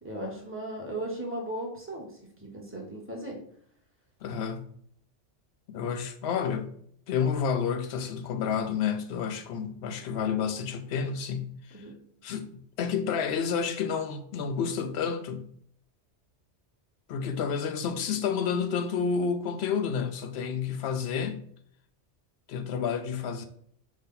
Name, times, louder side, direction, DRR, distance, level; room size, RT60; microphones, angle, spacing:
voice 1, 0.0-2.1 2.4-3.4 11.7-11.9, right 1 dB, 10° right, 1.0 m, -36 dB
voice 2, 4.2-4.7 5.7-6.7 7.1-11.8 12.2-15.5 17.1-21.4 22.5-23.5, left 6 dB, 65° left, 0.8 m, -30 dB
4.9 x 2.8 x 3.7 m
omnidirectional pair, 1.2 m